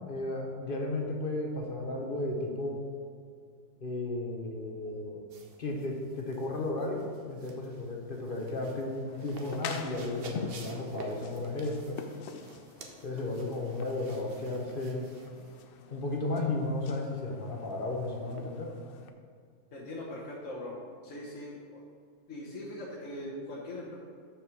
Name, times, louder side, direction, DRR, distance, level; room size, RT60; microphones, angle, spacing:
voice 1, 0.1-2.8 3.8-5.2 5.6-12.0 13.0-15.1 15.9-18.7, left 2 dB, 45° left, 0 dB, 0.9 m, -34 dB
sound 1, 5.3-15.6, right 2 dB, 50° right, 0.9 m, -50 dB
sound 2, 9.1-19.1, left 5 dB, 85° left, 0.5 m, -46 dB
voice 2, 19.7-20.8 21.0-21.8 22.3-24.0, left 1 dB, 60° left, -5 dB, 1.3 m, -41 dB
6.0 x 4.9 x 6.2 m, 2.1 s
omnidirectional pair, 1.5 m